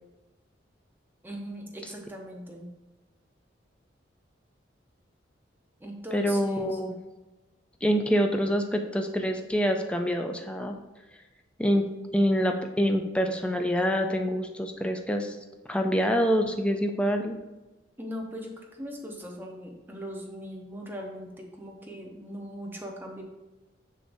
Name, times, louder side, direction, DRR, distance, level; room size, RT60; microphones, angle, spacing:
voice 1, 1.2-2.7 5.8-6.8 18.0-23.2, equal, 10° right, -1 dB, 0.9 m, -40 dB
voice 2, 6.1-7.0 7.8-10.8 11.6-11.8 12.1-15.4 15.7-17.4, equal, 5° left, 4 dB, 0.4 m, -26 dB
6.6 x 6.4 x 2.7 m, 1.1 s
head